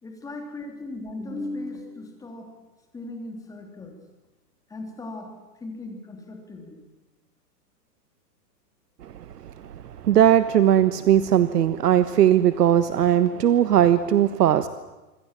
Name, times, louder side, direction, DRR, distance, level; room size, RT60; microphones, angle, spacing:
voice 1, 0.0-2.5 2.9-4.0 4.7-5.3 5.6-6.8, left 2 dB, 5° left, 3 dB, 3.2 m, -37 dB
voice 2, 10.0-14.7, right 10 dB, 70° right, 12 dB, 1.4 m, -18 dB
26.5 x 25.0 x 7.5 m, 1.1 s
hypercardioid pair, 165°, 50 cm